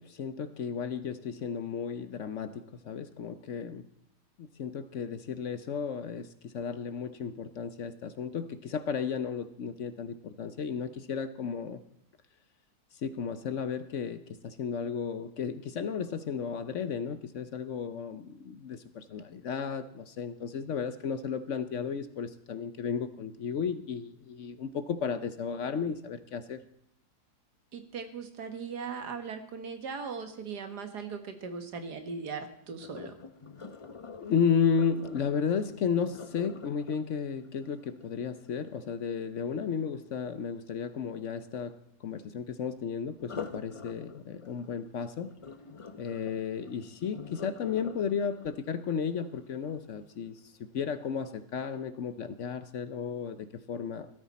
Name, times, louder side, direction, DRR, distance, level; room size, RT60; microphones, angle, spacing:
voice 1, 0.0-3.8 4.4-11.8 13.0-26.6 34.2-45.3 46.0-54.1, left 6 dB, 60° left, 12 dB, 0.9 m, -33 dB
voice 2, 27.7-33.1, right 5 dB, 85° right, 7 dB, 2.0 m, -39 dB
Sink (filling or washing), 32.8-38.8 43.1-50.2 50.7-51.0 51.5-51.6, left 5 dB, 40° left, 0.4 m, -47 dB
16.5 x 13.0 x 4.2 m, 0.73 s
omnidirectional pair, 1.7 m